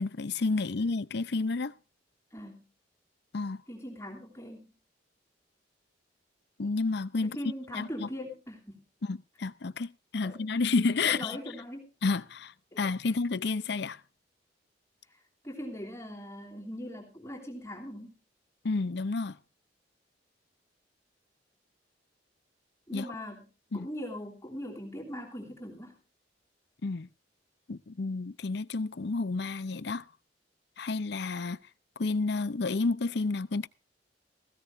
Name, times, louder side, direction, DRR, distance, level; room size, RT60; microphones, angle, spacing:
voice 1, 0.0-1.7 3.3-3.6 6.6-7.4 7.7-8.1 9.0-11.4 12.0-14.0 18.6-19.4 22.9-23.1 23.7-23.9 26.8-27.1 27.7-30.1 30.8-31.6 32.0-33.7, left 3 dB, 65° left, 0.6 m, -30 dB
voice 2, 2.3-2.7 3.7-4.7 7.2-8.8 10.2-10.3 11.0-11.9 12.7-12.8 15.4-18.2 22.9-23.5 23.7-26.0, equal, 15° left, 3.2 m, -40 dB
17.5 x 16.0 x 2.6 m
head